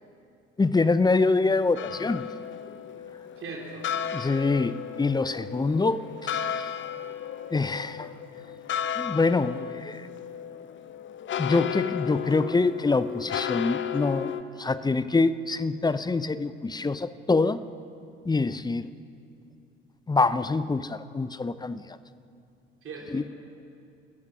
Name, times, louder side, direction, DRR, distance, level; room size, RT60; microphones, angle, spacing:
voice 1, 0.6-2.3 4.1-6.0 7.5-8.1 9.0-10.0 11.4-14.3 14.6-17.6 18.3-18.9 20.1-21.8 23.1-23.3, left 3 dB, 15° left, 15 dB, 0.7 m, -25 dB
sound 1, 1.8-14.4, left 9 dB, 35° left, 0.9 m, -34 dB
voice 2, 2.9-3.9 22.8-23.3, right 4 dB, 40° right, -1 dB, 3.9 m, -41 dB
30.0 x 14.5 x 6.2 m, 2.5 s
figure-of-eight pair, 55°, 32 cm